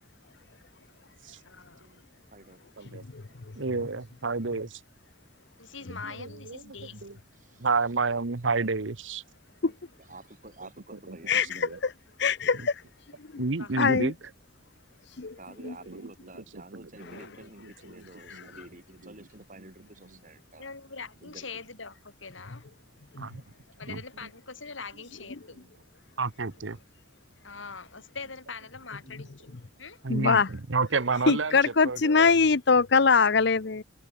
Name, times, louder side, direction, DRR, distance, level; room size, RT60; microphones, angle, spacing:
voice 1, 1.4-1.9 5.6-7.0 13.6-13.7 20.6-22.6 23.8-25.6 27.4-29.5 29.8-30.0, left 4 dB, 85° left, 6.8 m, -42 dB
voice 2, 2.3-2.6 5.8-5.9 7.3-7.7 9.7-11.4 15.4-20.7 21.2-21.5, right 2 dB, 40° right, 5.2 m, -50 dB
voice 3, 3.5-4.8 6.0-7.2 7.6-9.2 11.1-11.2 11.4-11.8 13.4-14.3 15.6-16.0 16.7-17.2 18.0-18.5 19.0-19.1 23.2-23.4 23.9-24.3 26.2-26.8 30.0-32.3, right 4 dB, 80° right, 1.1 m, -31 dB
voice 4, 11.3-11.9 12.2-12.7 13.2-13.4 13.8-14.1 15.2-15.4 15.6-15.7 23.1-23.3 30.1-30.5 31.3-33.8, left 5 dB, 60° left, 0.8 m, -23 dB
head